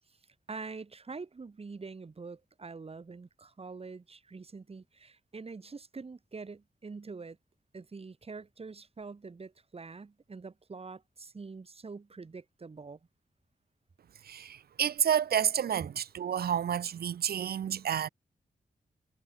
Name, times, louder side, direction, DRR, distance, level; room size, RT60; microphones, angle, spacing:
voice 1, 0.5-7.4 7.7-13.0, right 4 dB, 40° right, 2.9 m, -45 dB
voice 2, 14.2-18.1, right 9 dB, 85° right, 0.6 m, -30 dB
wide cardioid pair, 130°, 16 cm